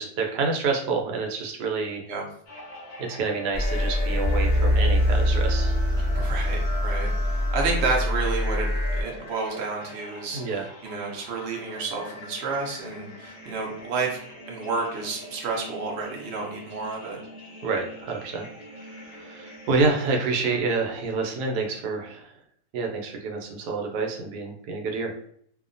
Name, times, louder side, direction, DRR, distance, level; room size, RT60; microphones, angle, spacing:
voice 1, 0.0-2.0 3.1-5.8 10.3-10.7 17.6-18.5 18.8-22.3 22.7-25.1, right 4 dB, 85° right, 1 dB, 1.1 m, -28 dB
sound 1, 2.5-20.6, left 1 dB, 80° left, 0.3 m, -43 dB
sound 2, 3.5-9.0, left 1 dB, 35° left, 0.7 m, -23 dB
voice 2, 6.1-7.1 7.5-14.2 14.5-17.2, right 4 dB, 60° right, 0 dB, 0.7 m, -30 dB
2.8 x 2.1 x 2.5 m, 0.64 s
omnidirectional pair, 1.7 m